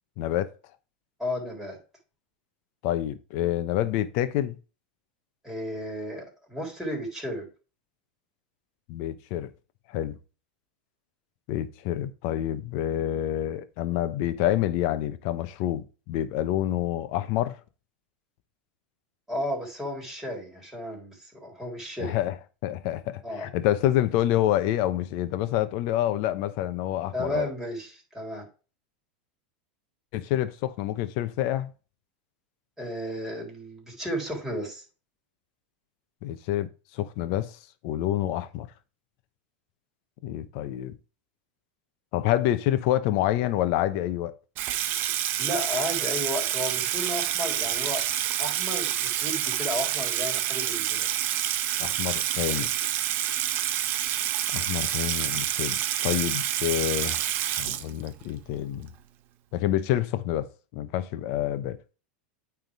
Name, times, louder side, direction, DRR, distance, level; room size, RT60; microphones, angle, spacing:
voice 1, 0.2-0.5 2.8-4.6 8.9-9.5 9.9-10.2 11.5-17.6 22.0-22.3 22.6-27.5 30.1-31.7 36.2-36.7 36.9-38.7 40.2-41.0 42.1-44.3 51.8-52.7 54.5-57.3 57.6-58.9 59.5-61.8, left 13 dB, 55° left, 1.0 m, -27 dB
voice 2, 1.2-1.8 5.4-7.5 19.3-22.2 23.2-23.5 27.1-28.5 32.8-34.8 45.4-48.0 48.4-51.1, equal, 10° right, 3.7 m, -33 dB
Water tap faucet / Sink (filling or washing), 44.6-58.3, right 12 dB, 45° right, 0.9 m, -28 dB
9.1 x 3.7 x 4.8 m
hypercardioid pair, 115°, 5 cm